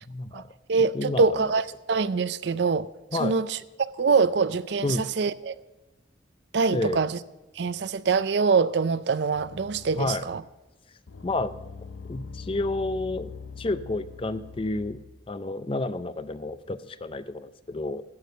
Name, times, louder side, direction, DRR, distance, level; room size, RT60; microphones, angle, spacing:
voice 1, 0.1-0.5 0.8-1.4 3.1-3.4 4.8-5.1 6.7-7.0 10.0-10.2 11.2-11.5 12.1-13.3 13.6-15.0 15.3-18.0, left 2 dB, 25° left, 0.4 m, -30 dB
voice 2, 0.7-2.9 3.2-3.6 4.0-5.6 6.5-7.2 7.6-10.4, right 4 dB, 60° right, 0.4 m, -24 dB
sound 1, 9.3-10.5 11.1-15.2, left 5 dB, 80° left, 0.6 m, -43 dB
11.5 x 8.3 x 6.6 m
head